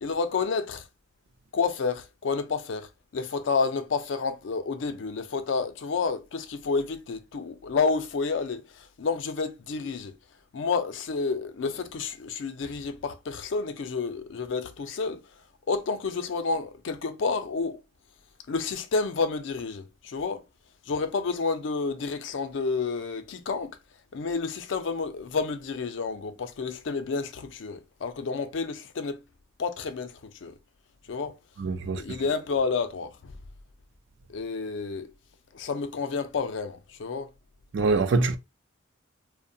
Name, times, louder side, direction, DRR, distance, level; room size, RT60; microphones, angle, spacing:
voice 1, 0.0-0.9 1.5-10.1 10.5-15.3 15.7-17.8 18.5-20.4 20.9-23.8 24.1-29.2 29.6-30.5 31.1-31.4 31.9-33.4 34.3-35.1 35.5-37.3, left 4 dB, 70° left, 0.4 m, -30 dB
voice 2, 31.6-32.0 37.7-38.4, right 3 dB, 65° right, 0.4 m, -24 dB
2.7 x 2.1 x 2.6 m
head